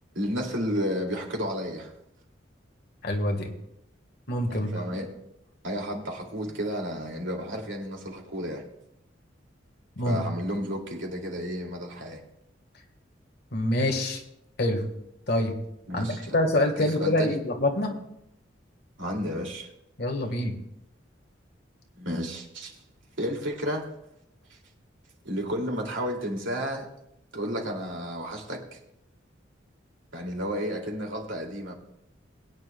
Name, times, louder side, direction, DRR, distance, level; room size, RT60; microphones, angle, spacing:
voice 1, 0.1-1.9 4.5-5.1 5.6-8.6 10.0-12.2 15.9-16.4 16.8-17.4 19.0-19.7 22.0-22.8 23.2-23.9 24.5-24.6 25.2-26.9 27.3-28.8 30.1-31.7, equal, 90° right, 0 dB, 2.5 m, -32 dB
voice 2, 3.0-3.5 4.3-4.7 10.0-10.2 13.5-14.2 14.6-14.8 15.3-15.5 15.9-16.1 16.3-18.0 20.0-20.5, left 1 dB, 55° left, 4 dB, 1.5 m, -25 dB
22.0 x 9.4 x 2.3 m, 0.81 s
head